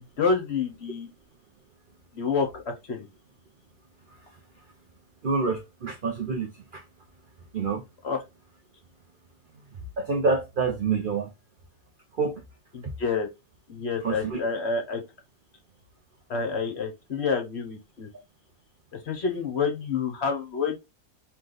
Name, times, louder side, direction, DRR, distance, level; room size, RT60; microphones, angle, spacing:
voice 1, 0.2-1.1 2.1-3.1 8.0-8.2 12.7-13.3 13.7-15.0 16.3-18.1 18.9-20.8, left 5 dB, 50° left, 1.0 m, -28 dB
voice 2, 5.2-6.8 7.5-7.8 10.0-11.3 12.1-12.4 12.8-12.9 14.0-14.5, right 4 dB, 60° right, 0.5 m, -27 dB
3.3 x 3.1 x 3.8 m
omnidirectional pair, 1.7 m